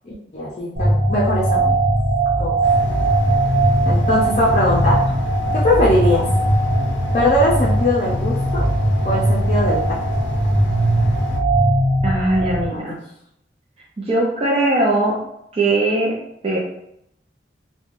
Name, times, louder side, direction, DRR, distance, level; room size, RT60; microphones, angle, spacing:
voice 1, 0.0-1.7 2.4-2.5 3.8-5.0 5.5-6.2 7.1-8.6 9.0-9.8 12.7-12.9, left 1 dB, 40° left, -6 dB, 0.5 m, -20 dB
sound 1, 0.8-12.6, right 1 dB, 90° right, 1.0 m, -19 dB
air conditioner, 2.6-11.4, left 1 dB, 90° left, 0.4 m, -28 dB
voice 2, 12.0-12.9 14.0-15.2 15.5-16.6, right 2 dB, 35° right, -5 dB, 0.4 m, -20 dB
3.2 x 2.1 x 2.5 m, 0.77 s
head